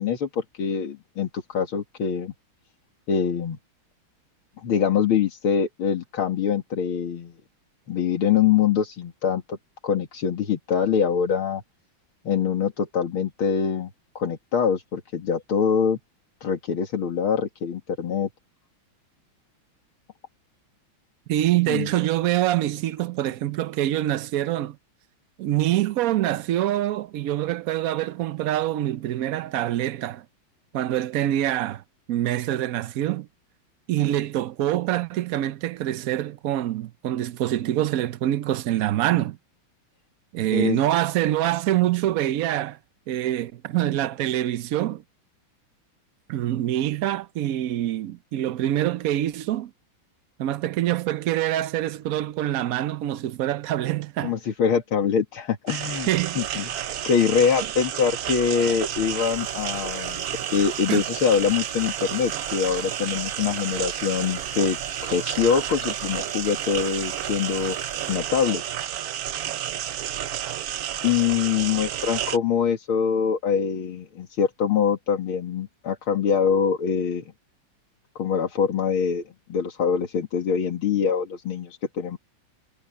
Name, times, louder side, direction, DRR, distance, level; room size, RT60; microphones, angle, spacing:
voice 1, 0.0-2.3 3.1-3.6 4.6-7.3 7.9-9.6 9.8-11.6 12.2-13.9 14.2-16.0 16.4-18.3 21.7-21.9 40.5-40.8 54.2-56.1 56.4-56.7 57.0-64.8 65.1-67.8 68.1-68.6 71.0-77.2 78.2-79.2 79.5-82.2, left 7 dB, 80° left, 2.7 m, -24 dB
voice 2, 21.3-24.8 25.4-30.2 30.7-33.3 33.9-39.4 40.3-42.8 43.1-45.0 46.3-49.7 50.4-54.3 56.1-56.7 60.9-61.0, right 13 dB, 85° right, 0.7 m, -25 dB
sound 1, 55.7-72.4, right 11 dB, 65° right, 1.0 m, -31 dB
sound 2, 59.2-68.2, equal, 20° right, 5.6 m, -46 dB
omnidirectional pair, 2.3 m